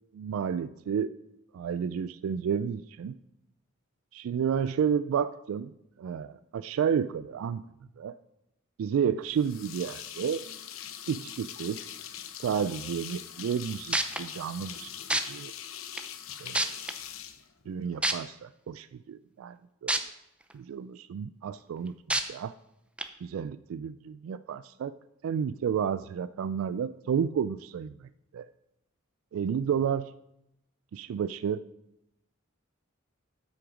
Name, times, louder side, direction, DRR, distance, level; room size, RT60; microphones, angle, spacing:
voice 1, 0.1-1.1 1.5-3.2 4.1-5.7 6.0-7.6 8.0-8.2 8.8-10.4 11.1-11.8 12.4-15.5 16.4-16.7 17.7-19.6 19.8-19.9 20.5-22.5 23.2-24.9 25.2-28.5 29.3-30.1 30.9-31.6, right 7 dB, 90° right, 15 dB, 0.3 m, -31 dB
sound 1, 9.3-18.1, left 10 dB, 85° left, 0.8 m, -42 dB
sound 2, 13.9-14.2 15.1-15.2 16.0-16.1 16.5-16.9 18.0-18.1 19.9-20.0 20.5-20.6 22.1-22.2 23.0-23.1, right 2 dB, 5° right, 0.5 m, -26 dB
8.4 x 7.8 x 5.1 m, 0.83 s
head